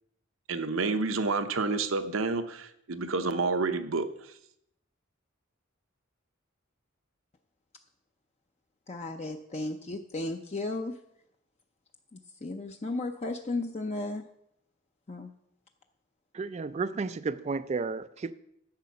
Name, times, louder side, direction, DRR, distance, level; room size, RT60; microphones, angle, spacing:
voice 1, 0.5-4.3, right 3 dB, 75° right, 0.8 m, -29 dB
voice 2, 8.9-10.9 12.1-14.2 15.1-15.3, left 2 dB, 35° left, 0.6 m, -34 dB
voice 3, 16.3-18.3, right 4 dB, 35° right, 0.4 m, -32 dB
10.5 x 7.3 x 5.7 m
head